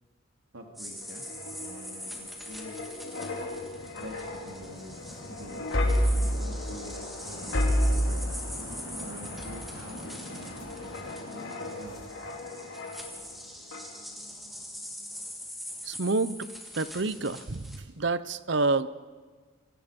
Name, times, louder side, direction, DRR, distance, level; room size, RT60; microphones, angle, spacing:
voice 1, 0.5-1.3 1.6-2.8 4.0-5.0 5.3-5.7 6.1-7.6 7.9-8.3 9.0-12.0, right 1 dB, 85° right, 1 dB, 3.3 m, -46 dB
sound 1, 0.7-17.8, left 1 dB, ahead, 3.3 m, -43 dB
sound 2, 1.0-13.3 13.7-13.9, equal, 75° left, 4.0 m, -32 dB
sound 3, 8.9-14.9, right 1 dB, 25° left, 7.1 m, -63 dB
voice 2, 15.9-16.4 16.8-17.7 18.0-18.9, right 3 dB, 60° right, 15 dB, 0.9 m, -27 dB
28.5 x 26.5 x 5.4 m, 1.4 s
head